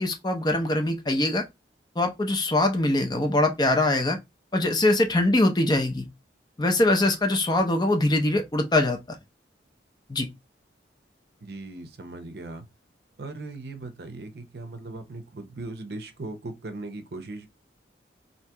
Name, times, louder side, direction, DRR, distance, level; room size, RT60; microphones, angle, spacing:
voice 1, 0.0-1.4 2.0-4.2 4.5-6.1 6.6-9.0 10.1-10.3, left 2 dB, 25° left, 0.5 m, -23 dB
voice 2, 11.4-12.7 13.2-17.5, right 2 dB, 60° right, 0.6 m, -38 dB
2.9 x 2.7 x 3.3 m
head